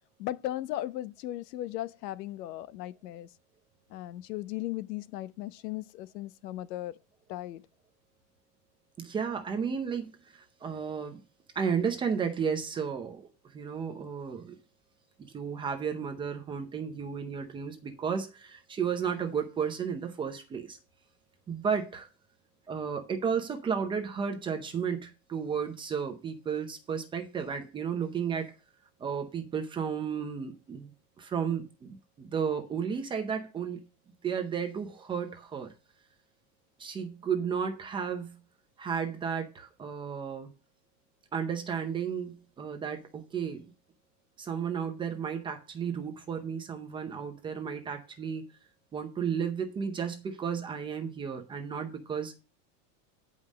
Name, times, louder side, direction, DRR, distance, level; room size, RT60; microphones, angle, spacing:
voice 1, 0.2-3.3 3.9-7.0 7.3-7.6, left 14 dB, 85° left, 0.9 m, -37 dB
voice 2, 9.0-11.2 11.5-13.3 13.5-14.5 15.3-20.8 21.5-22.1 22.7-28.5 29.0-30.9 31.2-33.8 34.2-35.7 36.8-38.3 38.8-40.5 41.3-43.6 44.4-48.4 48.9-52.3, right 7 dB, 10° right, 0.6 m, -33 dB
9.5 x 5.5 x 6.2 m
supercardioid pair, 175°, 48 cm